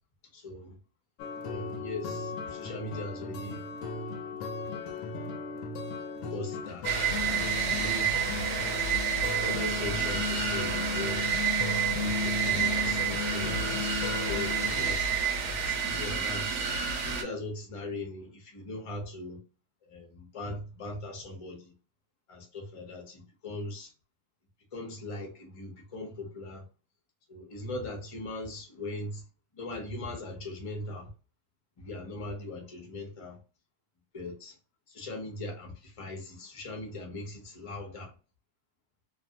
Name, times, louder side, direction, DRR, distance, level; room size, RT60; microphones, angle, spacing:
voice 1, 0.3-0.7 1.5-3.6 4.6-4.9 6.3-8.6 9.4-11.3 12.0-13.9 14.3-16.5 17.0-19.4 19.9-21.7 22.3-23.9 24.7-26.6 27.3-29.2 29.5-31.1 31.8-33.4 34.1-34.6 34.9-38.1, left 2 dB, 45° left, 0.4 m, -40 dB
sound 1, 1.2-14.9, left 4 dB, 70° left, 0.9 m, -36 dB
sound 2, 6.8-17.2, right 6 dB, 70° right, 1.0 m, -29 dB
2.6 x 2.4 x 2.7 m
omnidirectional pair, 1.9 m